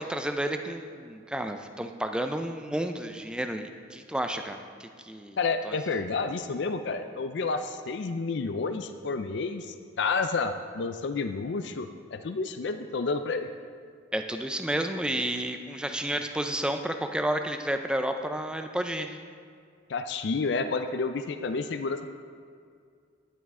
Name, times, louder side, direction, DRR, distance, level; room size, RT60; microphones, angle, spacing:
voice 1, 0.0-5.4 5.6-5.8 14.1-19.2, right 1 dB, 5° right, 6 dB, 0.4 m, -31 dB
voice 2, 5.4-13.5 19.9-22.1, left 4 dB, 60° left, 8 dB, 0.4 m, -30 dB
10.5 x 9.3 x 3.7 m, 2.2 s
head